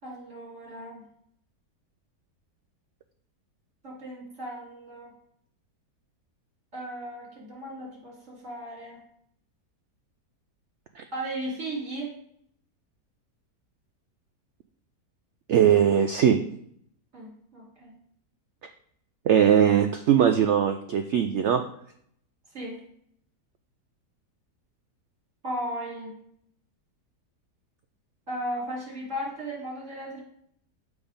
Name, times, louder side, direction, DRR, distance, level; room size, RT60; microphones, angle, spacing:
voice 1, 0.0-1.0 3.8-5.1 6.7-9.0 11.1-12.1 17.1-17.9 22.5-22.8 25.4-26.1 28.3-30.2, right 1 dB, 45° right, -4 dB, 3.1 m, -36 dB
voice 2, 15.5-16.4 19.3-21.6, right 9 dB, 85° right, 7 dB, 0.6 m, -20 dB
7.1 x 4.7 x 5.2 m, 0.69 s
omnidirectional pair, 1.8 m